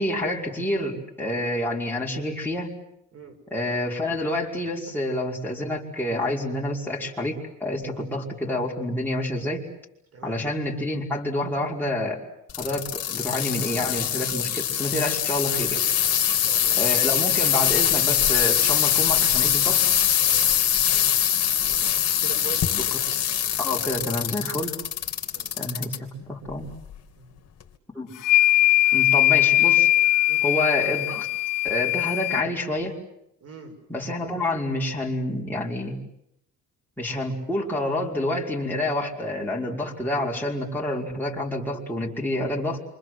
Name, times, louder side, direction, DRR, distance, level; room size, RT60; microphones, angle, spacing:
voice 1, 0.0-2.8 3.5-9.7 10.2-12.2 12.6-15.8 16.8-19.8 21.8-21.9 23.6-24.8 25.6-26.7 27.9-28.1 28.9-29.9 30.4-31.3 31.6-33.0 33.9-36.0 37.0-42.8, left 1 dB, 5° left, -4 dB, 5.4 m, -28 dB
sound 1, 12.5-26.0 26.5-26.9 27.6-27.7, left 10 dB, 55° left, 3.0 m, -23 dB
voice 2, 16.3-16.9 20.3-20.6 20.9-21.1 22.2-23.0 25.3-25.6 27.2-27.4 30.3-30.5 33.4-33.8, right 5 dB, 50° right, 7 dB, 6.5 m, -42 dB
sound 2, 28.2-32.4, left 16 dB, 85° left, 1.4 m, -20 dB
28.5 x 25.5 x 7.9 m, 0.79 s
cardioid pair, 125°, 31 cm